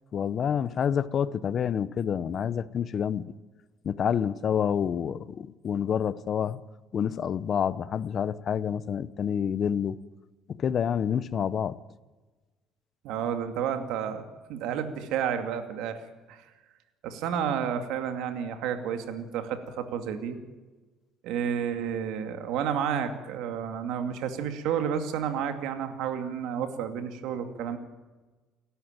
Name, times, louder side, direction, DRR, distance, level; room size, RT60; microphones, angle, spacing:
voice 1, 0.1-3.2 3.8-6.6 6.9-10.0 10.5-11.8, left 8 dB, 30° left, 17 dB, 0.7 m, -28 dB
voice 2, 13.0-14.2 14.5-16.0 16.3-16.5 17.0-20.4 21.2-27.8, right 8 dB, 65° right, 7 dB, 2.4 m, -31 dB
29.0 x 13.0 x 9.0 m, 1.3 s
cardioid pair, 170°, 0 cm